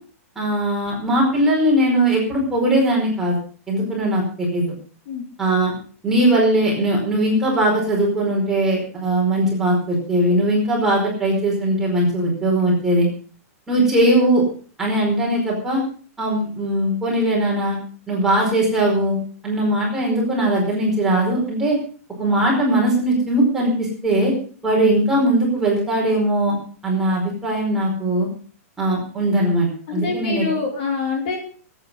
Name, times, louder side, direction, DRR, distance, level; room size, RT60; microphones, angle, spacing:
voice 1, 0.3-3.4 3.7-4.7 5.4-5.7 6.0-13.1 13.7-14.4 14.8-15.8 16.2-17.8 18.1-19.2 19.4-21.8 22.2-24.3 24.6-26.6 26.8-28.3 28.8-30.4, right 1 dB, 5° right, -4 dB, 5.0 m, -19 dB
voice 2, 29.9-31.4, left 4 dB, 35° left, 2 dB, 3.0 m, -25 dB
19.0 x 9.2 x 5.5 m, 0.42 s
supercardioid pair, 180°, 8 cm